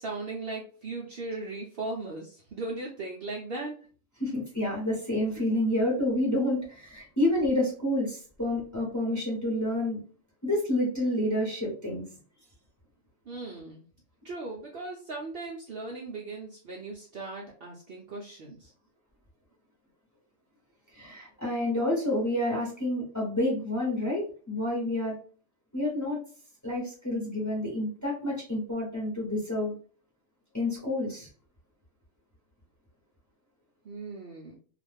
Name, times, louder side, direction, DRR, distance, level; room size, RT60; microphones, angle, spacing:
voice 1, 0.0-3.8 13.3-13.8 14.2-18.7 33.8-34.6, right 3 dB, 60° right, -1 dB, 0.7 m, -38 dB
voice 2, 4.2-10.0 10.4-12.0 20.9-25.2 25.7-26.2 26.6-29.7 30.5-31.3, left 1 dB, 15° left, -3 dB, 0.8 m, -29 dB
2.4 x 2.4 x 3.3 m, 0.41 s
omnidirectional pair, 1.4 m